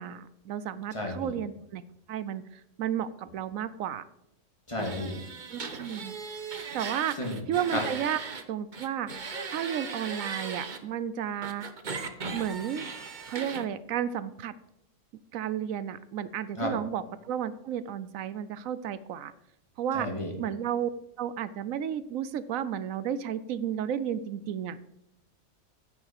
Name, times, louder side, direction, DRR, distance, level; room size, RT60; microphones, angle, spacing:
voice 1, 0.0-1.8 2.1-4.0 5.5-6.2 6.7-7.2 7.5-8.2 8.5-9.1 9.5-11.7 12.3-12.9 13.3-14.5 15.3-19.3 19.8-20.1 20.4-20.9 21.2-24.8, right 9 dB, 80° right, 15 dB, 1.0 m, -32 dB
voice 2, 0.9-1.3 4.7-5.1 7.1-7.4 7.7-7.8 16.6-16.7 19.9-20.3, left 1 dB, 20° left, 1 dB, 2.4 m, -32 dB
sound 1, 4.8-8.4 8.7-10.8 11.4-13.6, right 4 dB, 40° right, 1.0 m, -38 dB
9.7 x 6.1 x 7.2 m, 0.84 s
omnidirectional pair, 1.4 m